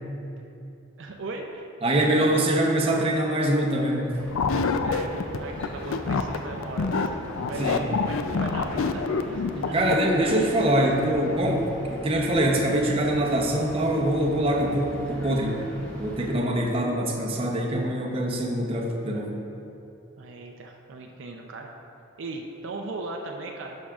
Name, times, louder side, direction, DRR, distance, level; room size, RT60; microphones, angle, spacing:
voice 1, 1.0-2.2 4.8-7.2 7.5-9.9 20.2-21.8 22.2-23.8, right 3 dB, 65° right, 1 dB, 0.5 m, -38 dB
voice 2, 1.8-4.2 7.6-7.8 9.6-15.6 16.0-19.4, right 1 dB, 30° right, -1 dB, 0.7 m, -24 dB
sound 1, 4.1-16.3, equal, 10° left, 1.2 m, -40 dB
sound 2, 4.3-10.5, left 4 dB, 80° left, 0.4 m, -27 dB
11.5 x 6.3 x 2.4 m, 2.8 s
head